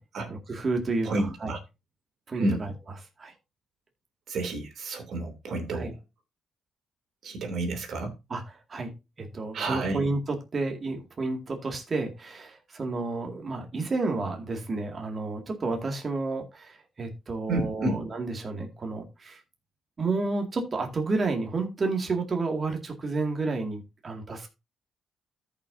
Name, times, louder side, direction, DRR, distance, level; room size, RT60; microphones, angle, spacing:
voice 1, 0.3-1.5 2.3-2.7 3.2-3.3 5.7-5.9 8.3-8.4 8.7-8.9 9.2-19.4 20.0-24.5, right 3 dB, 35° right, 2.1 m, -31 dB
voice 2, 1.0-1.6 2.3-2.6 4.3-5.9 7.2-8.1 9.5-10.1 17.5-18.0, right 2 dB, 65° right, 3.0 m, -30 dB
14.0 x 6.0 x 2.7 m
cardioid pair, 90°, 0 cm